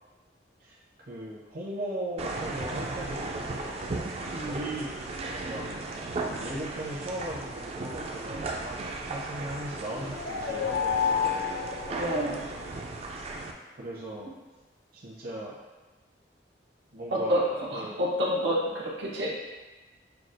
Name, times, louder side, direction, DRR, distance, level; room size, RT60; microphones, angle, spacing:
voice 1, 0.6-3.8 4.4-5.7 6.3-11.8 13.8-14.3 14.9-15.6 16.9-18.0, right 1 dB, 55° right, -5 dB, 0.7 m, -38 dB
sound 1, 2.2-13.5, right 2 dB, 35° right, 0.3 m, -36 dB
voice 2, 4.3-4.6 11.9-12.5 17.1-19.3, equal, 85° right, -4 dB, 0.8 m, -29 dB
sound 2, 9.9-12.8, left 7 dB, 85° left, 0.4 m, -30 dB
5.8 x 2.3 x 2.5 m, 1.2 s
head